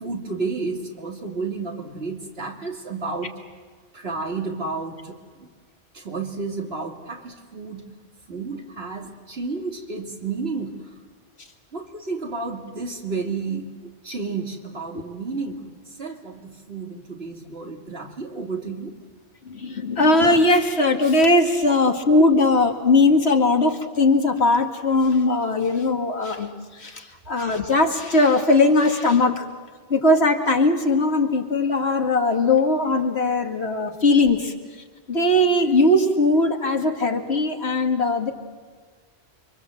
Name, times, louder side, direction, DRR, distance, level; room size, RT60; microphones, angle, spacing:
voice 1, 0.0-3.3 3.9-5.5 5.9-7.8 8.3-10.8 11.7-18.9, right 4 dB, 75° right, 2 dB, 3.1 m, -31 dB
voice 2, 19.4-29.5 29.9-34.5 35.1-38.3, left 2 dB, 85° left, 4 dB, 2.4 m, -19 dB
30.0 x 24.5 x 7.8 m, 1.5 s
omnidirectional pair, 1.1 m